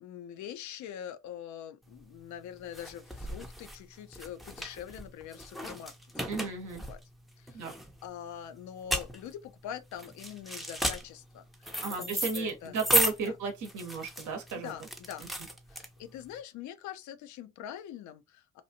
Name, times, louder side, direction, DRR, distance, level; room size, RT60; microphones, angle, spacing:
voice 1, 0.0-6.5 6.9-7.0 7.4-7.8 8.0-12.8 13.2-13.4 14.5-15.3 15.7-18.6, left 10 dB, 60° left, 0.6 m, -44 dB
sound 1, 1.9-16.3, equal, ahead, 0.6 m, -35 dB
voice 2, 6.3-6.8 7.5-7.7 11.8-14.7, right 4 dB, 60° right, 0.9 m, -34 dB
2.9 x 2.3 x 2.7 m
hypercardioid pair, 50°, 33 cm